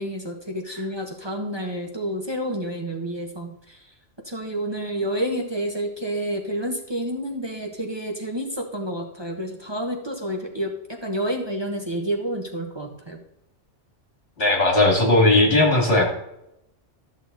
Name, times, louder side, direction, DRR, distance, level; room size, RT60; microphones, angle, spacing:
voice 1, 0.0-3.9 4.2-13.2, right 1 dB, 25° right, 2 dB, 1.1 m, -29 dB
voice 2, 14.4-16.1, left 2 dB, 55° left, 1 dB, 2.9 m, -17 dB
12.5 x 6.5 x 4.0 m, 0.83 s
omnidirectional pair, 1.2 m